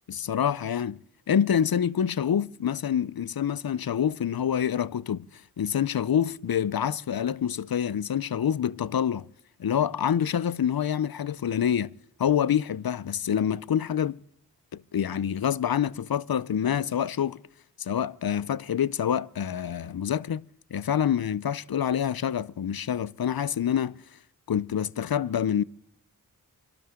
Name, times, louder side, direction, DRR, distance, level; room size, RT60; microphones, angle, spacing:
voice 1, 0.1-1.0 1.3-5.3 5.6-9.3 9.6-11.9 12.2-14.2 14.7-17.4 17.8-20.5 20.7-24.0 24.5-25.6, left 9 dB, 70° left, 0.7 m, -26 dB
27.5 x 12.5 x 3.7 m
cardioid pair, 40°, 38 cm